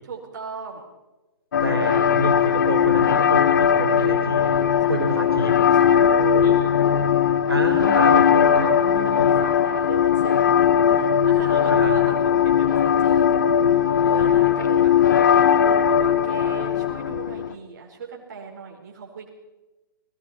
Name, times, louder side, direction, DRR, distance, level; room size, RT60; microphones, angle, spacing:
voice 1, 0.0-0.9 4.8-5.3 5.8-6.7 7.6-8.7 9.0-19.3, right 5 dB, 45° right, -1 dB, 4.6 m, -38 dB
sound 1, 1.5-17.5, left 8 dB, 50° left, 1.1 m, -19 dB
voice 2, 1.6-4.6 4.9-5.6 7.5-9.4 11.7-12.0, right 1 dB, 85° right, 2 dB, 4.6 m, -28 dB
29.5 x 20.0 x 4.4 m, 1.1 s
figure-of-eight pair, 125°, 12 cm